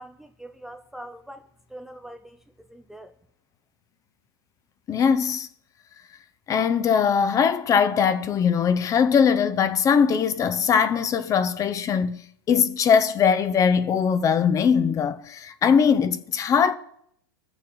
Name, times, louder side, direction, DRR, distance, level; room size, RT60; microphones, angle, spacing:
voice 1, 0.0-3.1, right 1 dB, 5° right, 0.5 m, -43 dB
voice 2, 4.9-5.5 6.5-12.2 12.5-16.7, left 7 dB, 25° left, 0.7 m, -21 dB
20.0 x 7.0 x 4.0 m
hypercardioid pair, 115°, 12 cm